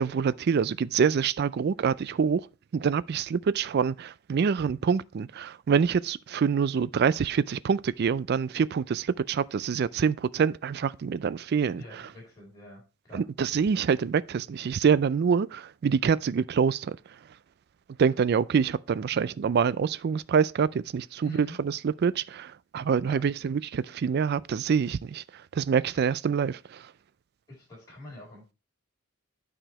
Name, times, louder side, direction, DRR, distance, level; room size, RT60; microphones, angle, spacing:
voice 1, 0.0-2.5 2.7-11.8 13.1-17.0 18.0-26.9, right 6 dB, 45° right, 0.3 m, -26 dB
voice 2, 11.8-12.8 13.1-13.2 21.2-21.6 23.0-23.2 23.9-24.0 25.9-26.1 27.6-28.5, left 1 dB, 15° left, 4.6 m, -45 dB
9.0 x 5.0 x 4.7 m
head